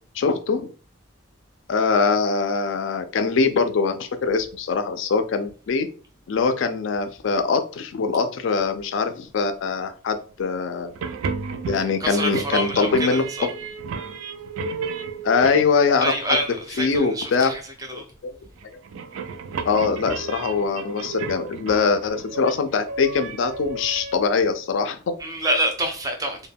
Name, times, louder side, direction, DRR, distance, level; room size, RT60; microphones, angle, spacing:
voice 1, 0.2-0.7 1.7-5.9 6.3-10.9 11.7-13.3 15.2-16.4 16.8-17.5 17.9-18.0 19.6-25.1, left 4 dB, 70° left, 0.4 m, -22 dB
sound 1, 10.9-16.2 18.4-24.1, right 4 dB, 85° right, 0.3 m, -33 dB
voice 2, 12.0-13.5 16.0-17.6 17.9-18.0 25.2-26.5, right 1 dB, 15° right, 0.4 m, -26 dB
2.2 x 2.2 x 3.4 m
head